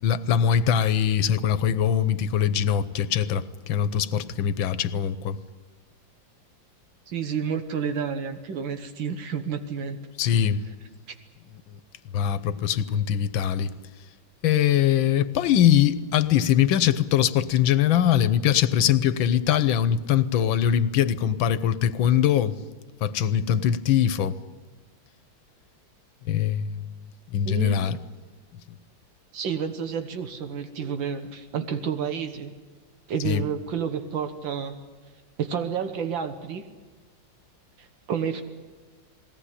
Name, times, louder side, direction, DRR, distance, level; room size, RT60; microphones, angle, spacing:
voice 1, 0.0-5.4 10.2-10.6 12.1-13.7 14.4-22.5 23.0-24.4 26.3-26.8 27.3-28.0 33.2-33.4, left 9 dB, 85° left, 1.6 m, -22 dB
voice 2, 7.1-10.0 27.4-27.9 29.3-32.5 33.1-34.8 35.4-36.6 37.8-38.4, right 6 dB, 80° right, 2.0 m, -30 dB
21.0 x 17.5 x 9.9 m
omnidirectional pair, 2.1 m